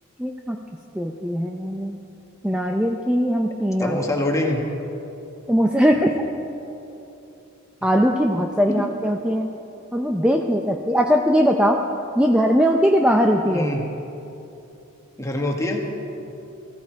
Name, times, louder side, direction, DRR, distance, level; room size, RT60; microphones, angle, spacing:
voice 1, 0.2-0.6 0.9-2.0 2.4-4.0 5.5-6.1 7.8-9.5 9.9-11.8 12.2-13.6, equal, 5° right, 2 dB, 0.6 m, -20 dB
voice 2, 3.8-4.6 8.7-8.9 13.5-13.8 15.2-15.8, left 1 dB, 15° left, 0 dB, 1.7 m, -24 dB
19.5 x 15.0 x 4.7 m, 2.9 s
head